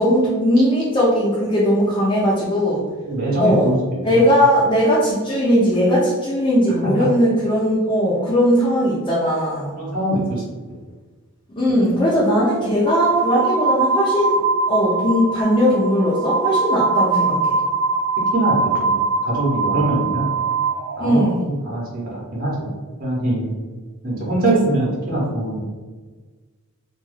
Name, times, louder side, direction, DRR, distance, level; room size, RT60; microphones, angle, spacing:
voice 1, 0.0-2.8 3.4-3.7 4.0-9.7 11.5-14.4 14.7-17.6 21.0-21.4, equal, 25° left, -6 dB, 0.4 m, -18 dB
voice 2, 3.1-3.8 4.1-4.2 6.8-7.1 9.8-10.4 18.3-20.3 21.0-22.7 23.0-23.5 24.0-25.6, right 1 dB, 40° right, -5 dB, 0.8 m, -22 dB
sound 1, 12.9-21.3, right 4 dB, 80° right, 0.4 m, -22 dB
2.3 x 2.2 x 3.2 m, 1.4 s
head